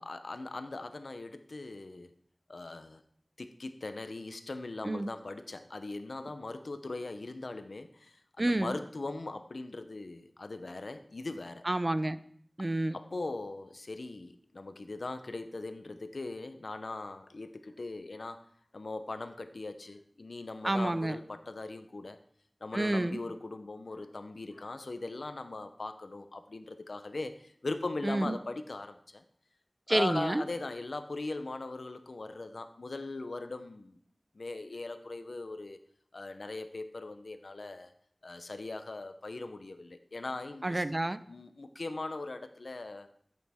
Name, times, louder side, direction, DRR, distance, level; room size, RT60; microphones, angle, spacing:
voice 1, 0.0-2.1 2.5-3.0 3.4-11.6 12.9-18.4 18.7-22.2 22.6-29.2 29.9-34.0 34.3-35.8 36.1-37.9 38.2-40.8 41.3-43.2, left 2 dB, 90° left, 9 dB, 0.7 m, -40 dB
voice 2, 8.4-8.7 11.7-12.2 12.6-13.0 20.6-21.2 22.7-23.2 28.0-28.4 29.9-30.4 40.6-41.2, right 1 dB, 40° right, 14 dB, 0.5 m, -29 dB
14.0 x 8.4 x 3.5 m, 0.63 s
wide cardioid pair, 45°, 0 cm